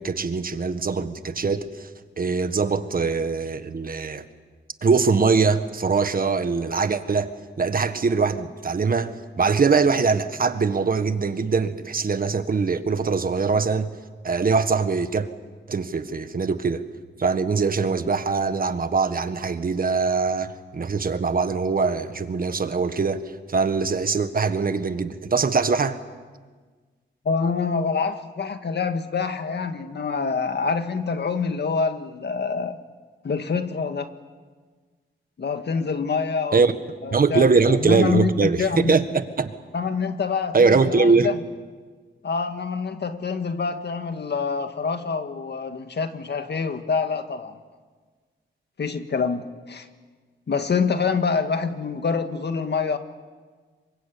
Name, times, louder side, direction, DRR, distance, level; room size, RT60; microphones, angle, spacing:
voice 1, 0.0-1.9 2.2-4.2 4.8-13.9 14.2-15.3 15.7-16.8 17.2-23.2 23.5-26.0 36.5-36.7 37.1-39.5 40.5-41.3, right 4 dB, 45° right, 10 dB, 1.6 m, -22 dB
voice 2, 27.3-32.8 33.2-34.1 35.4-36.7 37.0-39.0 39.7-41.4 42.2-47.6 48.8-49.9 50.5-53.0, left 5 dB, 60° left, 8 dB, 1.9 m, -26 dB
27.0 x 24.0 x 8.6 m, 1.5 s
wide cardioid pair, 95°, 20 cm